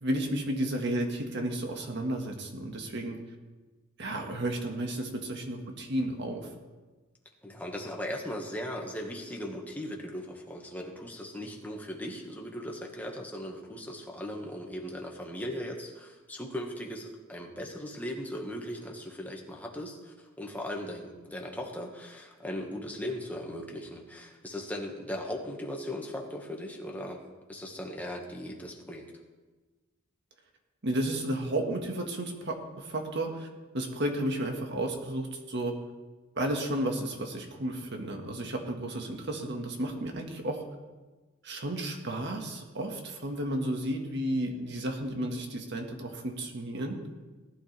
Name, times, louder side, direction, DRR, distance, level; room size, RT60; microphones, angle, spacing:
voice 1, 0.0-3.2 4.0-6.5 30.8-33.5 33.7-35.7 36.3-40.6 41.4-47.0, right 1 dB, 60° right, 2 dB, 1.7 m, -32 dB
voice 2, 7.4-27.2 27.5-29.1, left 1 dB, 10° left, 0 dB, 1.6 m, -38 dB
19.0 x 11.5 x 3.4 m, 1.3 s
head